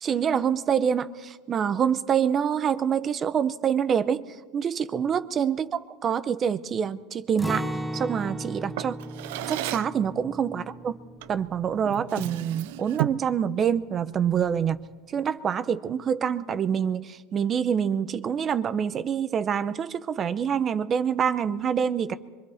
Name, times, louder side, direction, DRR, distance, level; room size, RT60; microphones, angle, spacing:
voice 1, 0.0-4.2 4.5-7.6 7.9-9.0 9.5-11.0 11.3-14.8 15.1-22.1, right 8 dB, 30° right, 13 dB, 0.8 m, -26 dB
Acoustic guitar, 7.4-13.3 13.6-13.8 14.2-14.7, right 1 dB, ahead, 1.1 m, -37 dB
Drawer open or close, 8.7-10.0 11.2-11.4 11.8-13.3, right 16 dB, 80° right, 0.6 m, -33 dB
24.5 x 24.5 x 4.3 m, 1.3 s
supercardioid pair, 140°, 0 cm